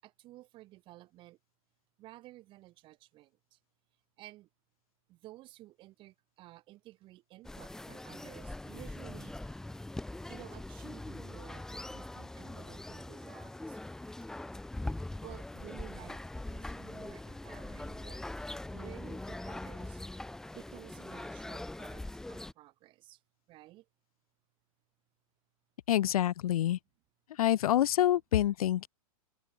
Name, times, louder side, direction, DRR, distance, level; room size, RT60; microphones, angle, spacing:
voice 1, 0.0-1.4 2.0-3.6 4.2-4.5 5.1-9.6 10.3-13.8 14.2-14.3 15.2-16.2 16.5-18.3 18.7-20.0 20.5-22.0 22.3-23.2 23.5-23.9, right 17 dB, 25° right, 6.9 m, -53 dB
sound 1, 7.4-22.5, left 2 dB, 5° left, 1.6 m, -42 dB
voice 2, 25.9-26.8 27.4-28.9, left 12 dB, 75° left, 0.8 m, -27 dB
open air
supercardioid pair, 165°, 18 cm